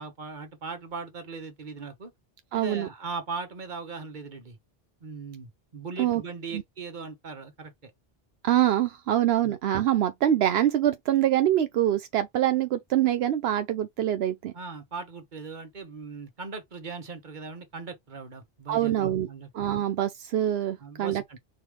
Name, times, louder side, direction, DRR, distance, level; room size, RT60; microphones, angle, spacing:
voice 1, 0.0-2.1 2.5-4.6 5.0-7.9 9.4-9.5 14.5-19.5 20.8-21.4, right 4 dB, 50° right, 1.4 m, -39 dB
voice 2, 2.5-2.9 6.0-6.2 6.5-6.6 8.4-14.5 18.7-19.3 19.5-21.2, right 12 dB, 80° right, 0.8 m, -24 dB
4.9 x 3.4 x 3.1 m
omnidirectional pair, 1.0 m